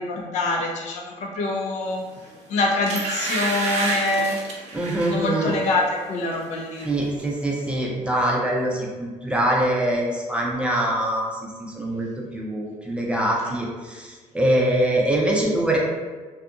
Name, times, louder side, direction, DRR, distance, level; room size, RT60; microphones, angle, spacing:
voice 1, 0.0-2.0 2.5-4.4 5.1-6.9, left 2 dB, 70° left, 0 dB, 0.5 m, -25 dB
sound 1, 2.2-2.3 2.9-5.2 5.6-5.9 6.2-6.9 7.2-7.3, right 2 dB, 65° right, 0.5 m, -29 dB
voice 2, 4.7-5.5 6.8-11.3 11.7-12.1 12.3-15.8, right 1 dB, 10° right, -3 dB, 0.5 m, -23 dB
2.7 x 2.4 x 2.3 m, 1.4 s
cardioid pair, 125°, 12 cm